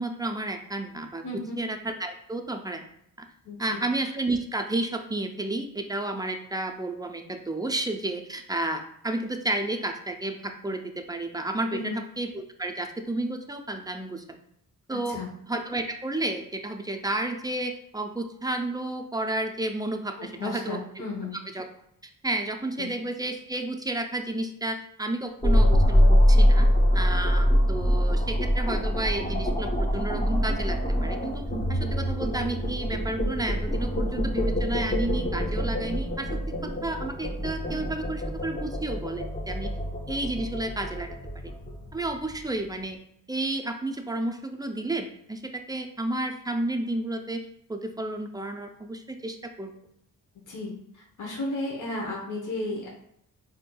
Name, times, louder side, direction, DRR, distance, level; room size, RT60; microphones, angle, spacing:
voice 1, 0.0-2.8 3.2-3.3 3.6-14.2 14.9-15.2 15.5-20.8 21.5-21.6 22.2-26.7 26.9-31.4 31.7-36.3 36.8-39.7 40.1-41.1 41.4-41.5 41.9-43.0 43.3-47.4 47.7-49.7, right 2 dB, 10° right, 4 dB, 0.3 m, -31 dB
voice 2, 1.2-1.6 3.4-3.8 11.7-12.0 14.9-15.3 20.2-21.3 22.8-22.9 50.5-50.7 51.2-52.9, left 2 dB, 60° left, -2 dB, 0.9 m, -33 dB
sound 1, 25.4-42.7, equal, 25° left, 0.8 m, -24 dB
4.3 x 2.7 x 2.2 m, 0.73 s
cardioid pair, 85°, 34 cm